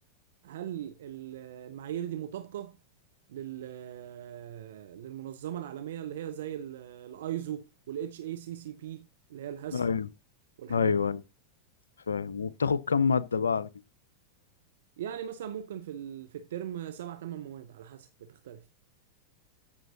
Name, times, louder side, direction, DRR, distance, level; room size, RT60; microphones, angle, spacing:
voice 1, 0.4-2.8 3.3-9.8 10.6-11.0 15.0-18.7, right 10 dB, 60° right, 0.7 m, -39 dB
voice 2, 9.7-10.1 10.7-11.2 12.1-13.7, left 5 dB, 75° left, 0.5 m, -27 dB
14.0 x 5.7 x 2.7 m
figure-of-eight pair, 90°, 0 cm